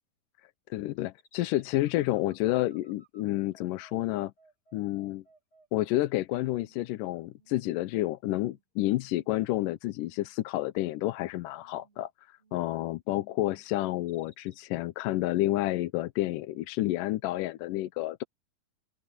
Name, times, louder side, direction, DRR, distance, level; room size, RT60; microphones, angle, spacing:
voice 1, 0.7-4.3 4.7-5.2 5.7-18.2, left 16 dB, 80° left, 2.3 m, -30 dB
sound 1, 1.2-6.1 6.5-7.0 7.3-7.8 8.2-8.6 9.0-9.6 9.9-10.4 10.7-11.2 11.5-12.0 12.4-12.9 13.3-13.7 14.1-14.6, right 3 dB, 35° left, 6.8 m, -64 dB
open air
omnidirectional pair, 3.9 m